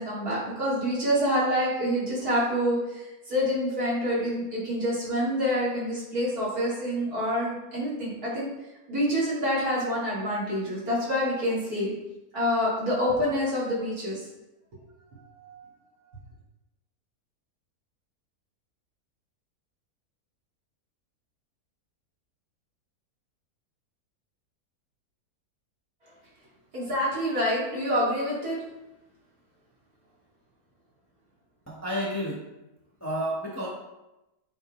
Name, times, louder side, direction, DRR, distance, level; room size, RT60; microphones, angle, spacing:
voice 1, 0.0-8.5 8.9-11.9 12.3-14.3 15.4-15.7 26.7-28.6, equal, 70° right, -8 dB, 3.0 m, -27 dB
voice 2, 31.7-32.4 33.0-33.7, equal, 10° left, -5 dB, 1.1 m, -30 dB
8.9 x 4.0 x 3.1 m, 0.96 s
omnidirectional pair, 1.6 m